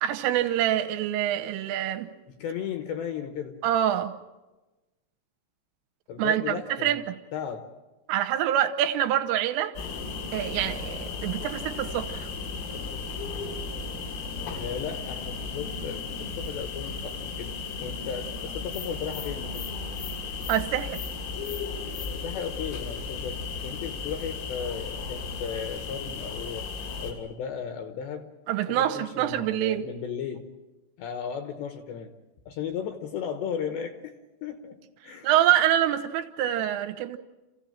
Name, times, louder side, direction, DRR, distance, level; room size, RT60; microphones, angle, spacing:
voice 1, 0.0-2.1 3.6-4.1 6.2-7.2 8.1-9.7 10.3-12.3 20.5-21.0 28.5-29.9 35.0-37.2, right 11 dB, 80° right, 3.4 m, -26 dB
voice 2, 2.3-3.6 6.1-7.0 7.3-7.7 14.5-17.5 17.8-19.7 22.2-26.7 27.0-28.3 28.7-30.5 31.0-32.1 32.5-34.8 35.0-35.3, left 7 dB, 70° left, 2.8 m, -35 dB
sound 1, 9.8-27.1, left 4 dB, 85° left, 5.7 m, -35 dB
28.0 x 15.5 x 8.9 m
omnidirectional pair, 6.0 m